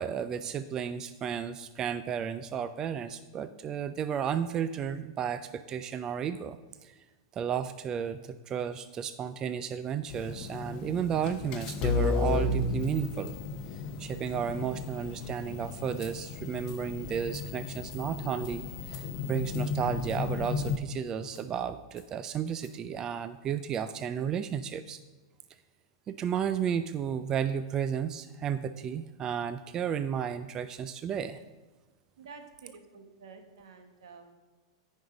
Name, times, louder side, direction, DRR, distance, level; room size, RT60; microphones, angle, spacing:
voice 1, 0.0-6.9 7.3-13.3 13.7-25.0 26.1-31.4, right 8 dB, 25° right, 11 dB, 0.3 m, -33 dB
sound 1, 10.1-20.8, left 3 dB, 35° left, 0.7 m, -33 dB
sound 2, 16.0-16.1 16.6-16.8 17.2-17.5 17.9-18.0 18.4-18.6 18.9-19.0 19.4-19.7 20.0-20.3 20.6-20.7 21.3-21.5 22.0-22.1 22.5-22.7, left 8 dB, 55° left, 1.6 m, -54 dB
voice 2, 32.2-34.3, right 4 dB, 80° right, 6 dB, 1.3 m, -50 dB
9.2 x 5.4 x 4.9 m, 1.2 s
supercardioid pair, 140°, 3 cm